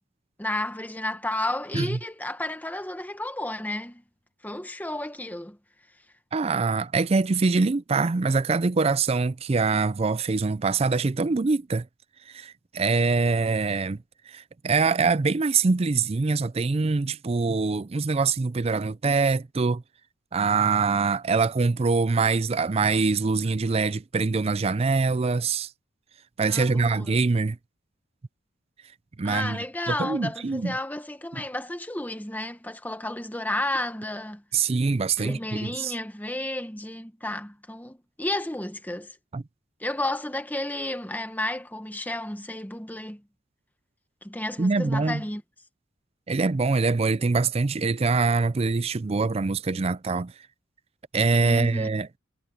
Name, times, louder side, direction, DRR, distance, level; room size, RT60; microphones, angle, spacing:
voice 1, 0.4-4.0 4.4-5.6 26.4-27.2 29.2-34.4 35.2-39.1 39.8-43.2 44.2-45.4 51.4-51.9, left 1 dB, 10° left, 1.1 m, -32 dB
voice 2, 6.3-11.9 12.3-14.0 14.3-19.8 20.3-25.7 26.4-27.6 29.2-30.8 34.5-35.9 39.3-39.4 44.6-45.2 46.3-50.3 51.1-52.1, right 4 dB, 30° right, 0.4 m, -24 dB
head